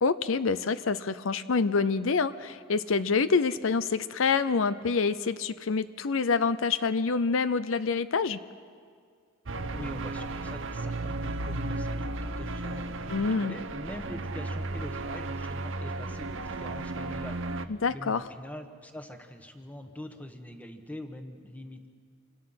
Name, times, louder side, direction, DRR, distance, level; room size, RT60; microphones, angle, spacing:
voice 1, 0.0-8.4 13.1-13.6 17.8-18.2, left 4 dB, 70° left, 14 dB, 0.6 m, -26 dB
sound 1, 9.5-17.7, right 2 dB, 65° right, 0.9 m, -34 dB
voice 2, 9.7-21.9, left 1 dB, 5° left, 6 dB, 1.3 m, -44 dB
27.5 x 24.5 x 5.8 m, 2.1 s
head